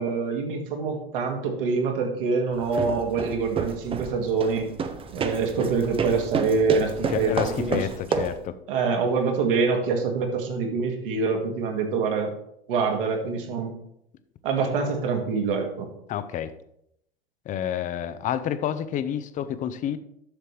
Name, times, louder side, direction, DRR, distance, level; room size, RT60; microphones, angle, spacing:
voice 1, 0.0-4.7 5.1-7.9 8.1-8.3 8.7-12.3 12.7-13.7 14.4-15.9, right 4 dB, 60° right, 3 dB, 2.0 m, -25 dB
sound 1, 2.5-8.5, right 5 dB, 20° right, 0.7 m, -30 dB
voice 2, 7.1-8.5 16.1-16.5 17.5-20.0, left 10 dB, 25° left, 12 dB, 0.6 m, -29 dB
11.5 x 6.8 x 3.2 m, 0.77 s
figure-of-eight pair, 90°, 30 cm